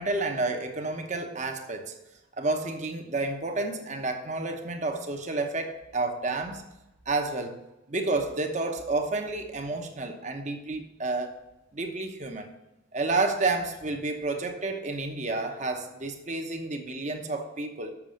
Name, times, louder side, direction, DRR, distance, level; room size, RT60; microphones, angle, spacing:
voice 1, 0.0-2.0 2.4-6.6 7.1-7.6 7.9-11.4 11.7-12.5 12.9-17.9, right 3 dB, 35° right, 0.9 m, -30 dB
7.3 x 6.1 x 6.4 m
head